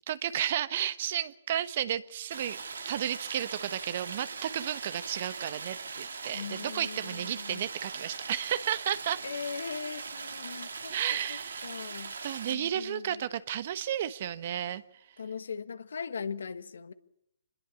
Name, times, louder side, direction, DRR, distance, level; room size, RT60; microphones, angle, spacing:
voice 1, 0.1-2.6 2.8-9.2 10.9-11.8 12.2-14.8, right 10 dB, 50° right, 1.2 m, -33 dB
Stream, 2.3-12.5, right 5 dB, 80° right, 2.4 m, -40 dB
voice 2, 6.3-7.7 9.2-11.0 11.3-12.2 12.5-13.3 15.2-16.9, left 6 dB, 75° left, 1.5 m, -40 dB
25.0 x 21.5 x 7.1 m
hypercardioid pair, 145°, 0 cm